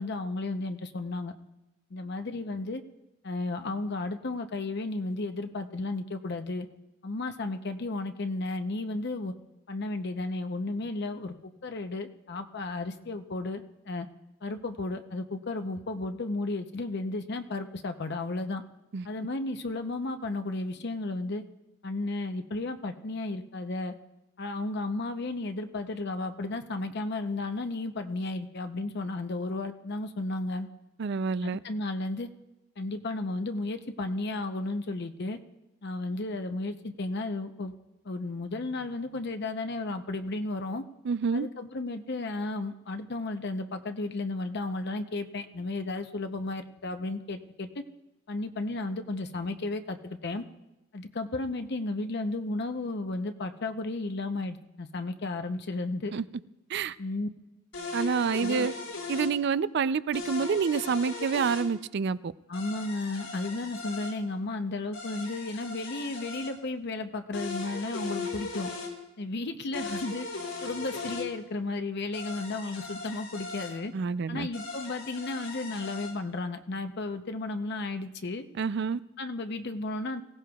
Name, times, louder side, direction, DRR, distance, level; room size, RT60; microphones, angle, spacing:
voice 1, 0.0-1.3 1.9-2.8 3.2-6.7 7.0-9.3 9.7-11.3 11.6-14.1 14.4-18.6 19.0-21.4 21.8-23.9 24.4-30.7 31.4-32.3 32.8-35.4 35.8-37.7 38.0-40.8 41.3-47.8 48.3-50.4 50.9-56.1 57.0-57.3 58.4-58.7 62.5-68.7 69.2-70.3 70.6-73.9 74.3-78.5 79.2-80.2, left 2 dB, 55° left, 0.7 m, -33 dB
voice 2, 31.0-31.6 41.0-41.5 56.1-56.2 56.7-57.0 57.9-58.7 59.1-62.3 73.9-74.5 78.6-79.0, right 5 dB, 60° right, 0.4 m, -28 dB
sound 1, 57.7-59.3 60.1-61.7 62.5-64.1 64.9-66.5 67.3-68.9 69.7-71.3 72.1-73.7 74.5-76.1, left 3 dB, 90° left, 4.3 m, -38 dB
23.5 x 16.5 x 2.3 m
head